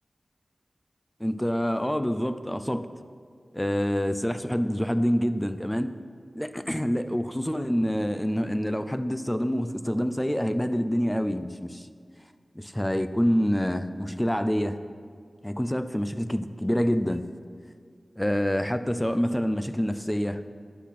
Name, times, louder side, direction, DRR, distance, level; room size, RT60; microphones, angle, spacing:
voice 1, 1.2-2.9 3.5-5.9 6.3-11.9 12.5-14.8 15.4-17.3 18.2-20.4, equal, 10° left, 10 dB, 0.5 m, -26 dB
14.5 x 10.0 x 4.2 m, 2.2 s
wide cardioid pair, 90°, 0 cm